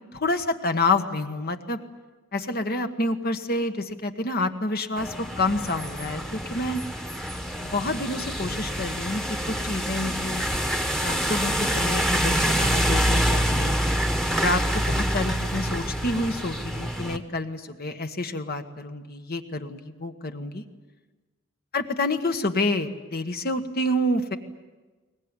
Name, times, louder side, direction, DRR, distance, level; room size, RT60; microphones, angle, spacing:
voice 1, 0.1-1.8 2.3-6.8 7.6-10.4 11.0-13.8 14.4-20.6 21.7-24.4, left 2 dB, 45° left, 7 dB, 1.4 m, -28 dB
sound 1, 5.0-17.2, equal, ahead, 1.3 m, -26 dB
22.5 x 19.5 x 9.7 m, 1.3 s
head